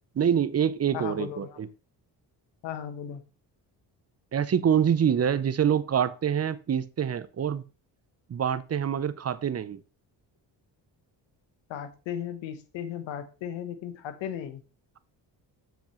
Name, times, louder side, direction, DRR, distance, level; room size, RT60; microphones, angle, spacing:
voice 1, 0.2-1.7 4.3-7.6 8.3-9.8, right 8 dB, 35° right, 0.6 m, -26 dB
voice 2, 0.9-1.6 2.6-3.2 11.7-14.6, left 9 dB, 85° left, 1.1 m, -36 dB
7.4 x 7.2 x 3.1 m
cardioid pair, 75°, 44 cm